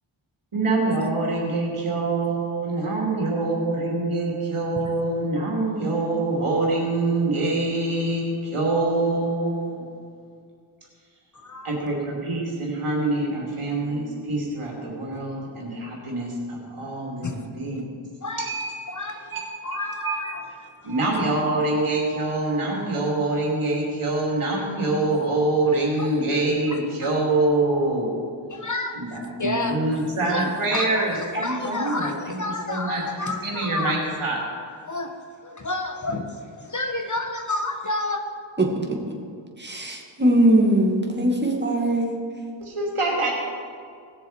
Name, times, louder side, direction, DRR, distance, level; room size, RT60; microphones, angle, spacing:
voice 1, 0.5-9.9 11.6-18.0 18.4-18.7 19.3-20.2 20.8-28.1 28.9-32.4 32.7-34.4 42.6-43.3, right 2 dB, 85° right, -2 dB, 2.7 m, -25 dB
voice 2, 11.3-11.8 17.2-17.5 18.2-18.5 18.9-19.4 19.6-20.4 20.8-20.9 26.0-26.1 26.7-27.1 28.5-30.0 30.3-34.0 34.9-35.1 35.4-38.2, left 2 dB, 35° left, 4 dB, 1.3 m, -30 dB
voice 3, 38.6-39.0 39.6-42.2, right 1 dB, 20° right, 0 dB, 2.3 m, -21 dB
18.5 x 6.9 x 4.8 m, 2.2 s
cardioid pair, 50°, 49 cm